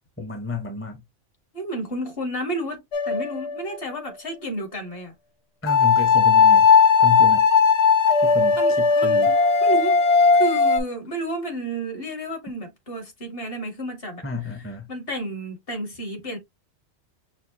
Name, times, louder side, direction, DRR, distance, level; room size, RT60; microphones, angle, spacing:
voice 1, 0.2-1.0 5.6-6.7 7.0-7.5 8.2-9.3 14.2-14.9, left 3 dB, 15° left, 0.6 m, -31 dB
voice 2, 1.5-5.1 8.5-14.5 14.9-16.4, right 1 dB, 50° left, 1.7 m, -31 dB
sound 1, 2.9-3.6 5.7-10.8, left 5 dB, 65° left, 0.9 m, -17 dB
6.1 x 2.3 x 2.8 m
omnidirectional pair, 1.3 m